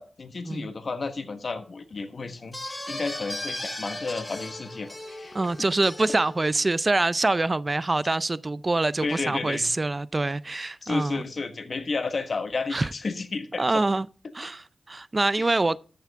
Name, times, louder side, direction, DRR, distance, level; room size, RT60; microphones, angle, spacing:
voice 1, 0.0-5.4 9.0-9.7 10.8-13.8 15.4-15.5, left 3 dB, 60° left, 1.4 m, -32 dB
sound 1, 2.5-6.7, left 1 dB, 20° left, 2.7 m, -37 dB
voice 2, 5.3-11.2 12.7-12.9 13.6-14.1 14.3-15.8, right 2 dB, 35° right, 0.4 m, -25 dB
13.5 x 7.1 x 3.6 m
cardioid pair, 60°, 0 cm